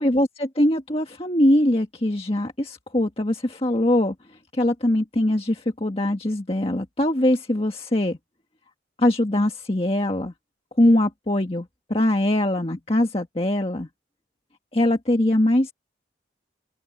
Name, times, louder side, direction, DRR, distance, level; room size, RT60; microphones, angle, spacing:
voice 1, 0.0-4.1 4.5-8.2 9.0-10.3 10.8-13.9 14.7-15.7, left 1 dB, 30° left, 1.6 m, -22 dB
open air
head